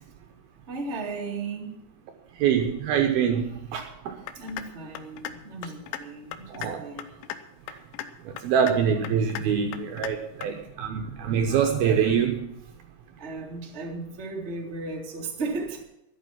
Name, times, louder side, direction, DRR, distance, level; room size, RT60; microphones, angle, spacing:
voice 1, 0.7-1.8 4.3-7.1 13.2-15.8, right 3 dB, 40° right, 0 dB, 0.9 m, -35 dB
voice 2, 2.4-4.2 6.5-6.9 7.7-7.8 8.3-12.5, right 7 dB, 75° right, 4 dB, 2.4 m, -25 dB
sound 1, 4.3-4.7 5.0-5.3 5.6-6.0 6.3-6.7 7.0-7.4 7.7-8.1 8.4-8.7 9.0-9.4 9.7-10.1 10.4-10.5, left 12 dB, 80° left, 3.1 m, -35 dB
13.0 x 10.5 x 5.9 m, 0.85 s
omnidirectional pair, 5.4 m